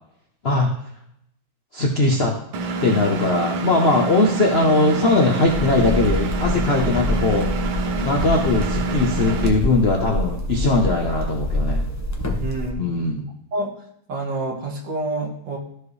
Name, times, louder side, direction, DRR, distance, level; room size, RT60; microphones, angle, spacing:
voice 1, 1.7-2.3 2.8-11.8 12.8-13.2, left 2 dB, 50° left, 0 dB, 0.7 m, -20 dB
Engine, 2.5-9.5, right 3 dB, 80° right, 1.7 m, -27 dB
sound 1, 5.5-12.7, left 1 dB, 25° left, 0.4 m, -26 dB
voice 2, 12.4-13.2 13.5-13.7 14.1-15.6, right 2 dB, 60° right, 0 dB, 2.0 m, -28 dB
14.0 x 4.8 x 3.2 m, 0.75 s
omnidirectional pair, 2.3 m